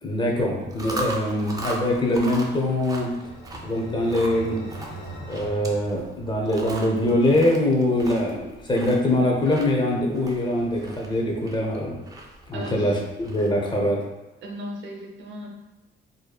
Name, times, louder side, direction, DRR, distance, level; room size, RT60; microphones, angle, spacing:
voice 1, 0.0-3.1 3.6-4.6 5.2-12.0 12.5-14.0, left 1 dB, 25° left, -1 dB, 0.6 m, -23 dB
Chewing mastication, 0.6-13.8, right 1 dB, 20° right, 0.4 m, -39 dB
sound 1, 2.3-6.8, right 2 dB, 70° left, 0.7 m, -41 dB
voice 2, 12.5-13.0 14.4-15.5, equal, 65° right, 1 dB, 0.6 m, -36 dB
2.6 x 2.3 x 2.3 m, 1.1 s
cardioid pair, 90°, 20 cm